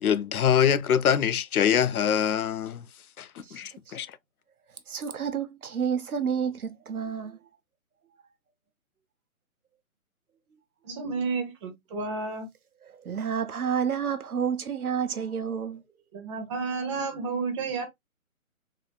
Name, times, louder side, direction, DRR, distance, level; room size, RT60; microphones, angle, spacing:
voice 1, 0.0-2.9 3.2-4.2, left 8 dB, 80° left, 0.6 m, -24 dB
voice 2, 4.9-7.4 12.9-15.8, right 7 dB, 85° right, 1.0 m, -30 dB
voice 3, 10.8-12.5 16.1-17.9, right 4 dB, 20° right, 1.0 m, -31 dB
3.8 x 3.3 x 2.3 m
hypercardioid pair, 155°, 43 cm